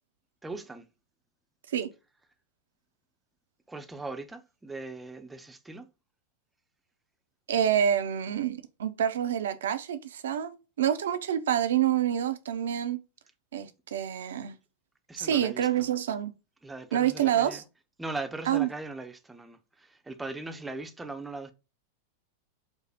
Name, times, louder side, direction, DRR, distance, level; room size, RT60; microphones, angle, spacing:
voice 1, 0.4-0.9 3.7-5.9 15.1-15.7 16.6-17.6 18.0-21.5, right 3 dB, 10° right, 0.5 m, -39 dB
voice 2, 7.5-13.0 13.5-14.5 15.2-16.3 16.9-17.6 18.5-18.7, right 10 dB, 60° right, 0.5 m, -27 dB
5.0 x 2.1 x 3.4 m
figure-of-eight pair, 90°, 0 cm